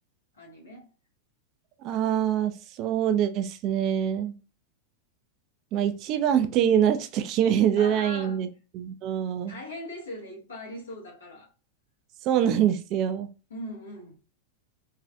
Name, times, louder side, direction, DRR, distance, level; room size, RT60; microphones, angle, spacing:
voice 1, 0.3-0.9 7.8-8.5 9.0-9.1 9.5-11.5 13.5-14.2, left 1 dB, 70° left, 1.7 m, -40 dB
voice 2, 1.8-4.3 5.7-8.5 8.7-9.6 12.2-13.3, right 9 dB, 40° right, 0.4 m, -24 dB
3.7 x 3.1 x 2.4 m
figure-of-eight pair, 90°, 0 cm